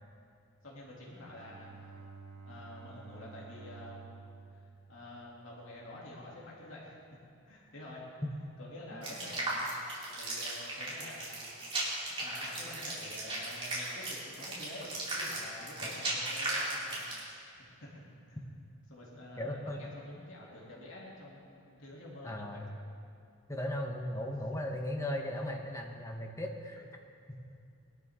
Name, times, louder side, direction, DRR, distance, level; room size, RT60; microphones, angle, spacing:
voice 1, 0.6-2.0 2.4-4.0 4.9-7.2 7.5-8.0 8.6-11.4 12.1-18.4 18.9-22.7 24.1-24.3, left 1 dB, 65° left, -5 dB, 3.0 m, -49 dB
Bowed string instrument, 0.8-6.1, right 4 dB, 80° right, 1.6 m, -52 dB
sound 1, 9.0-17.3, right 2 dB, 25° right, 3.8 m, -36 dB
voice 2, 19.4-19.8 22.2-22.7 23.5-26.7 27.3-27.4, left 1 dB, 15° left, 1 dB, 1.3 m, -37 dB
22.5 x 12.5 x 3.8 m, 2.4 s
head